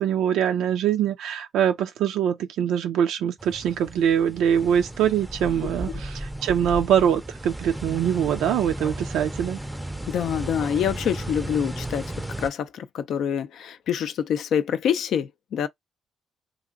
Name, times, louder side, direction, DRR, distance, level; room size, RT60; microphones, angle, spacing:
voice 1, 0.0-9.6, right 9 dB, 85° right, 0.3 m, -23 dB
sound 1, 3.4-12.5, right 1 dB, 5° right, 0.5 m, -34 dB
voice 2, 10.1-12.1 12.4-15.7, left 8 dB, 70° left, 0.4 m, -26 dB
2.9 x 2.5 x 2.4 m
cardioid pair, 90°, 0 cm